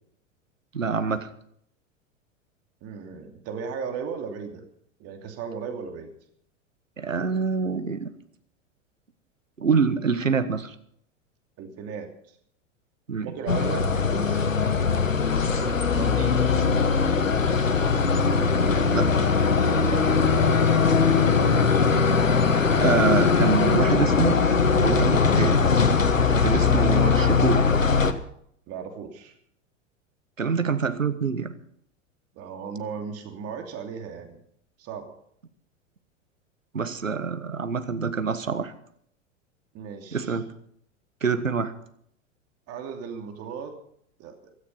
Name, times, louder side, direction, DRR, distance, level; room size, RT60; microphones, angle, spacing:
voice 1, 0.7-1.3 7.0-8.1 9.6-10.7 13.1-13.3 18.9-19.2 22.8-24.4 24.8-25.6 26.4-27.7 30.4-31.6 36.7-38.7 40.1-40.5 41.2-41.7, right 5 dB, 85° right, 11 dB, 1.4 m, -25 dB
voice 2, 2.8-4.7 5.0-6.1 11.6-12.1 13.2-14.5 15.3-15.6 15.9-16.5 19.9-21.1 26.6-26.8 28.7-29.3 32.3-34.4 34.8-35.1 39.7-40.4 42.7-43.8 44.2-44.4, right 6 dB, 40° right, 5 dB, 2.9 m, -36 dB
sound 1, 13.5-28.1, left 5 dB, 85° left, 1.3 m, -21 dB
16.5 x 13.5 x 5.6 m, 0.67 s
figure-of-eight pair, 90°, 38 cm